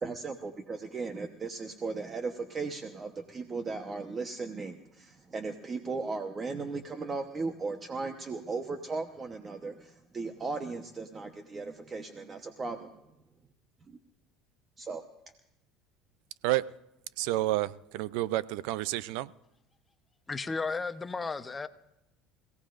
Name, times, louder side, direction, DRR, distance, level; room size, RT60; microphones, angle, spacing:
voice 1, 0.0-13.0 13.9-14.0 14.8-15.0, right 4 dB, 25° right, 1.0 m, -37 dB
voice 2, 17.2-19.3, right 16 dB, 75° right, 0.5 m, -30 dB
voice 3, 20.3-21.7, left 4 dB, 20° left, 0.9 m, -34 dB
27.5 x 17.0 x 2.6 m
supercardioid pair, 120°, 0 cm